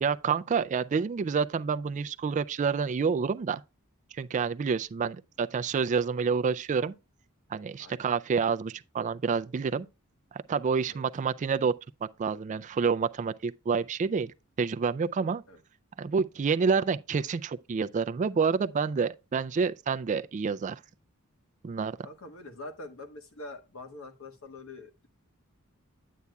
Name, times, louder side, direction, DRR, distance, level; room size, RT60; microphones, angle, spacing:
voice 1, 0.0-3.6 4.1-6.9 7.5-9.9 10.3-11.7 12.0-14.3 14.6-15.4 16.0-20.8 21.6-21.9, right 5 dB, 35° right, 0.3 m, -28 dB
voice 2, 22.0-25.1, left 2 dB, 65° left, 1.4 m, -44 dB
9.3 x 8.3 x 2.3 m
head